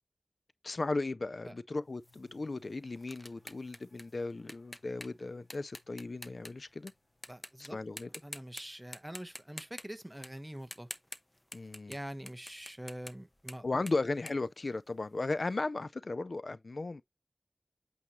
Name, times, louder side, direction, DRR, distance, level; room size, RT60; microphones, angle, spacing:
voice 1, 0.6-6.9 7.6-8.1 11.5-12.0 13.6-17.0, left 3 dB, 65° left, 0.3 m, -36 dB
sound 1, 1.6-10.6 10.9-11.0, left 5 dB, 40° left, 3.8 m, -72 dB
sound 2, 2.0-6.9 7.2-7.7 8.0-8.6 8.9-15.3, left 1 dB, 20° left, 0.8 m, -48 dB
voice 2, 7.3-7.8 8.2-10.9 11.9-13.8, equal, 10° right, 1.0 m, -44 dB
8.4 x 4.8 x 3.0 m
wide cardioid pair, 70°, 0 cm